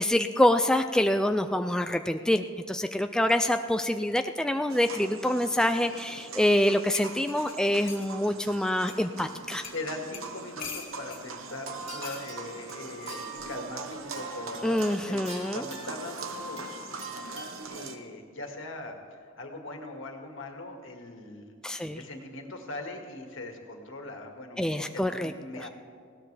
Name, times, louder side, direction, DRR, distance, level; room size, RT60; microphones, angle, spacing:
voice 1, 0.0-9.6 14.6-15.7 21.6-22.0 24.6-25.3, left 1 dB, 5° left, 7 dB, 0.3 m, -26 dB
sound 1, 4.7-18.0, right 4 dB, 90° right, 1.1 m, -42 dB
sound 2, 6.9-8.1 8.9-9.0 9.6-9.8 10.1-11.2 12.0-12.2 13.4-13.6, left 6 dB, 45° left, 2.1 m, -42 dB
voice 2, 9.7-16.9 17.7-25.7, left 2 dB, 70° left, 3 dB, 1.9 m, -41 dB
sound 3, 11.3-17.6, right 2 dB, 35° right, 2.9 m, -43 dB
19.5 x 17.0 x 3.4 m, 2.2 s
head